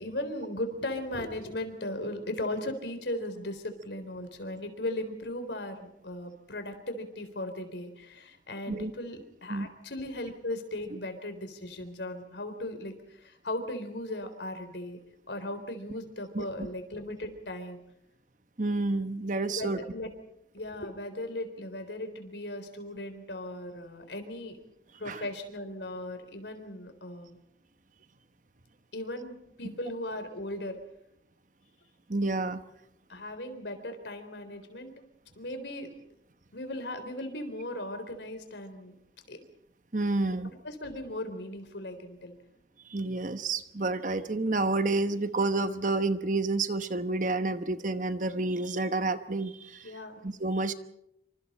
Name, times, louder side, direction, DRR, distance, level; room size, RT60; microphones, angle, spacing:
voice 1, 0.0-15.0 15.3-17.8 19.5-20.1 20.5-24.6 25.0-27.4 28.9-30.8 33.1-34.9 35.3-35.9 36.5-38.9 39.3-39.4 40.6-42.3 49.8-50.2, left 1 dB, 85° left, 8 dB, 3.7 m, -37 dB
voice 2, 18.6-19.8 25.1-25.2 32.1-32.6 39.9-40.5 42.9-49.9 50.2-50.7, right 2 dB, 45° right, 10 dB, 1.1 m, -29 dB
27.5 x 26.0 x 4.3 m, 0.77 s
head